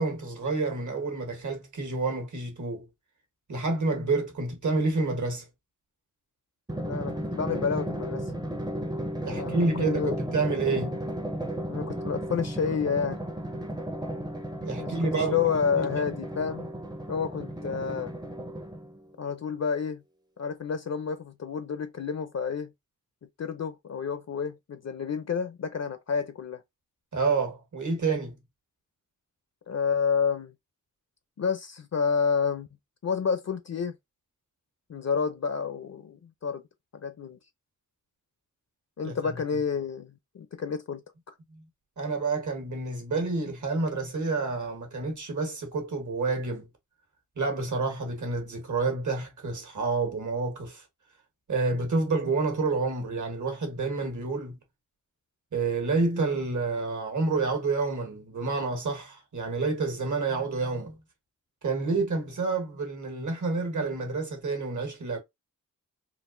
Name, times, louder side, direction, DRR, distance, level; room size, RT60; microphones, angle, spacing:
voice 1, 0.0-2.9 3.5-5.4 9.2-10.9 14.6-15.3 15.8-16.0 27.1-28.4 39.0-39.3 41.5-41.6 42.0-46.7 47.4-50.8 51.5-54.6 55.5-61.0 61.6-65.2, right 3 dB, 60° right, 1.5 m, -29 dB
Drum, 6.7-19.1, right 1 dB, 15° right, 0.6 m, -34 dB
voice 2, 6.8-8.3 9.3-10.1 10.7-10.9 11.7-13.2 14.8-16.7 17.1-18.1 19.2-20.0 20.4-22.7 23.4-26.6 29.7-30.5 31.4-32.7 33.0-33.9 34.9-36.6 36.9-37.4 39.0-41.0 41.3-41.4, left 6 dB, 55° left, 0.5 m, -30 dB
3.9 x 2.4 x 2.5 m
wide cardioid pair, 90°, 33 cm